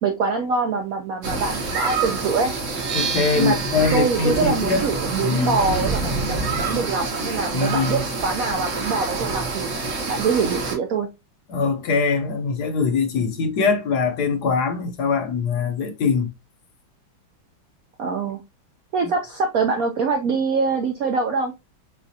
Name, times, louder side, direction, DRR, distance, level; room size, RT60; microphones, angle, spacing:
voice 1, 0.0-2.5 3.4-3.6 3.9-9.7 10.1-11.1 18.0-18.4 18.9-21.5, right 4 dB, 80° right, 0.7 m, -24 dB
sound 1, 1.2-10.8, right 3 dB, 45° right, 1.3 m, -27 dB
sound 2, 2.7-10.4, right 6 dB, 60° right, 1.0 m, -36 dB
voice 2, 2.9-4.8 5.2-5.6 7.5-8.0 11.5-16.3, left 5 dB, 60° left, 1.1 m, -22 dB
6.9 x 2.4 x 2.7 m
omnidirectional pair, 2.3 m